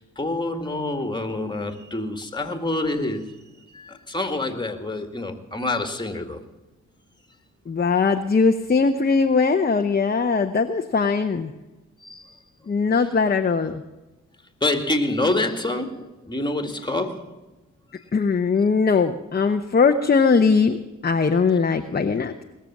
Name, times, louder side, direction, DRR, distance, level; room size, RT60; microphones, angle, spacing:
voice 1, 0.0-3.4 3.7-6.4 12.0-12.4 14.6-17.4, left 2 dB, 15° left, 7 dB, 2.1 m, -27 dB
voice 2, 7.7-11.5 12.7-13.8 18.1-20.8 21.0-22.4, left 5 dB, 30° left, 6 dB, 0.9 m, -20 dB
20.0 x 7.0 x 7.3 m, 1.1 s
cardioid pair, 60°, 31 cm